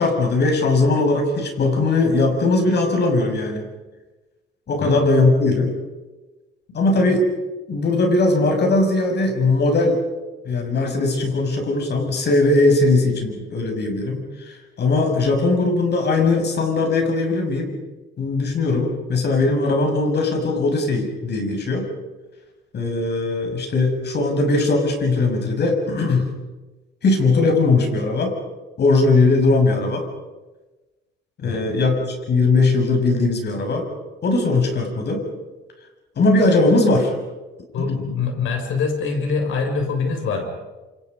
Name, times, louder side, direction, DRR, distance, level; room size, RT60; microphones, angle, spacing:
voice 1, 0.0-3.7 4.7-5.7 6.7-7.2 7.7-10.0 10.5-14.2 14.5-17.8 18.2-21.9 22.7-26.3 27.0-28.3 28.8-30.0 31.4-33.8 34.2-35.2 36.2-37.1 37.8-38.0, left 3 dB, 55° left, 3 dB, 7.1 m, -19 dB
voice 2, 37.7-40.4, left 4 dB, 80° left, 4 dB, 6.7 m, -24 dB
28.0 x 27.5 x 5.5 m, 1.2 s
cardioid pair, 90°, 20 cm